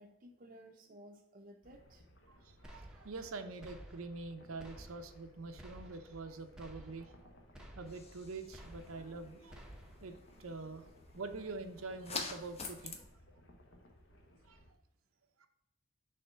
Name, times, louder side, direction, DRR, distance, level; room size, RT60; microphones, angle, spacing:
voice 1, 0.0-2.0 11.1-11.2, equal, 40° right, 0 dB, 0.7 m, -56 dB
sound 1, 1.6-14.7, equal, 55° left, 1.2 m, -62 dB
voice 2, 2.3-7.3 7.8-9.6 10.0-10.1 10.4-10.9 11.1-13.1 14.5-14.6 15.4-15.5, right 3 dB, 80° right, 6 dB, 0.7 m, -45 dB
sound 2, 2.6-3.3 3.6-4.3 4.6-5.3 5.6-6.3 6.6-7.2 7.5-8.2 8.5-9.2 9.5-10.2, right 1 dB, 5° right, 0.8 m, -54 dB
sound 3, 7.9-13.0, left 3 dB, 30° left, 0.9 m, -47 dB
6.7 x 3.5 x 5.7 m, 0.88 s
head